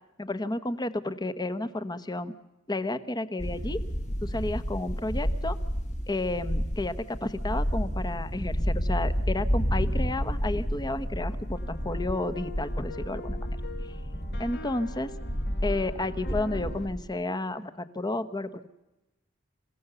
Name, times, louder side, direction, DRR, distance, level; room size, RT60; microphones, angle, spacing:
voice 1, 0.2-2.3 2.7-3.8 4.2-5.6 6.1-13.5 14.4-15.1 15.6-18.7, left 2 dB, 20° left, 12 dB, 1.0 m, -31 dB
sound 1, 3.4-17.1, equal, 35° left, 1.5 m, -31 dB
sound 2, 11.2-16.9, left 2 dB, 55° left, 1.6 m, -44 dB
27.0 x 16.5 x 6.8 m, 1.0 s
head